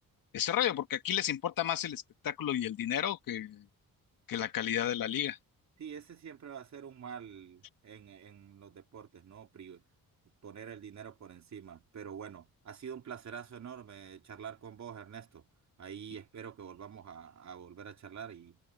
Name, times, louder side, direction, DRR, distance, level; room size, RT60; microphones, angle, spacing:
voice 1, 0.3-3.6 4.3-5.4, left 10 dB, 70° left, 1.7 m, -32 dB
voice 2, 5.8-9.8 10.4-15.5 15.8-18.6, right 7 dB, 50° right, 2.8 m, -46 dB
wide cardioid pair, 155°, 36 cm